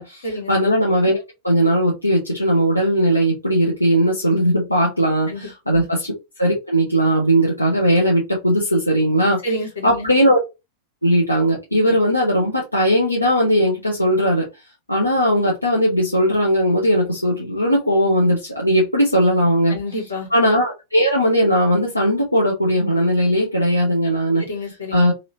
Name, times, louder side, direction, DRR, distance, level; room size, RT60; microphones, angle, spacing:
voice 1, 0.0-6.1 6.4-9.4 9.8-10.4 11.0-14.5 14.9-19.8 20.3-24.4 24.9-25.1, equal, 85° left, 0.9 m, -18 dB
voice 2, 5.3-5.8 9.4-10.1 19.7-20.3 24.4-25.0, left 1 dB, 70° left, 1.5 m, -29 dB
2.9 x 2.8 x 2.8 m
figure-of-eight pair, 90°, 0 cm